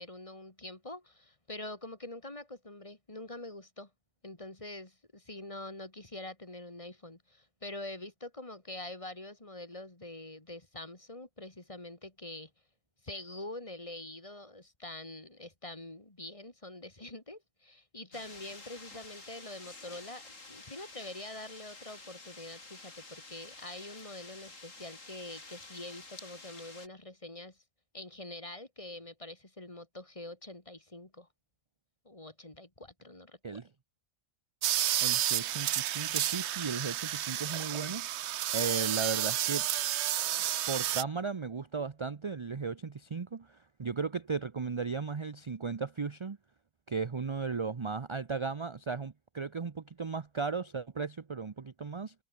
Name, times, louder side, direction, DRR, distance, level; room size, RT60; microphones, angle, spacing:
voice 1, 0.0-3.9 4.2-12.5 13.0-27.6 27.9-31.3 32.0-33.6, left 2 dB, 20° left, 2.6 m, -45 dB
sound 1, 18.1-26.9, left 3 dB, 60° left, 4.0 m, -50 dB
sound 2, 34.6-41.0, right 12 dB, 65° right, 0.8 m, -31 dB
voice 2, 35.0-38.1 38.5-39.7 40.7-46.4 46.9-52.1, right 5 dB, 35° right, 0.4 m, -36 dB
omnidirectional pair, 1.5 m